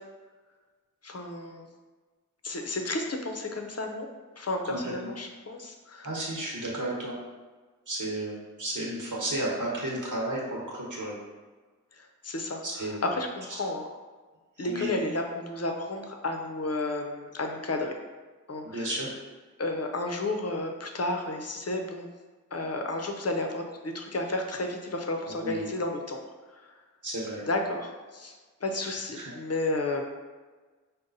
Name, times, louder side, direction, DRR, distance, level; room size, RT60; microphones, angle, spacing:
voice 1, 1.0-1.7 2.4-4.1 4.4-6.1 12.0-13.8 14.6-17.9 18.5-18.9 19.6-22.1 22.5-26.2 26.5-26.6 27.5-28.3 28.6-30.0, left 2 dB, 50° left, 3 dB, 0.6 m, -32 dB
voice 2, 4.6-5.1 6.0-7.2 7.9-11.1 12.6-13.0 14.6-14.9 18.6-19.1 25.2-25.6 27.0-27.4 28.8-29.3, right 1 dB, 70° right, -4 dB, 1.1 m, -33 dB
5.2 x 2.2 x 3.9 m, 1.3 s
wide cardioid pair, 55°, 31 cm